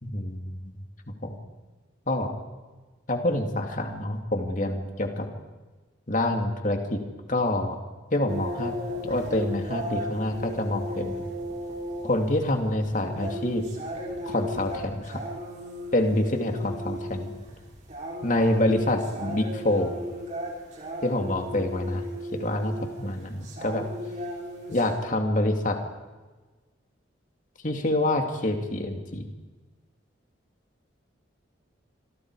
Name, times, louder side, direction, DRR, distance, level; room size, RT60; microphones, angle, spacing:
voice 1, 0.0-0.7 1.2-1.4 2.1-2.3 3.1-5.3 6.1-7.0 7.3-7.8 8.1-8.8 9.0-11.3 12.0-13.6 14.3-15.2 15.9-17.3 18.2-19.9 21.0-22.0 22.3-23.8 24.7-25.8 27.6-29.3, left 1 dB, 40° left, 4 dB, 2.6 m, -26 dB
sound 1, 8.3-25.0, equal, 35° right, 5.4 m, -36 dB
26.5 x 23.5 x 4.9 m, 1.3 s
head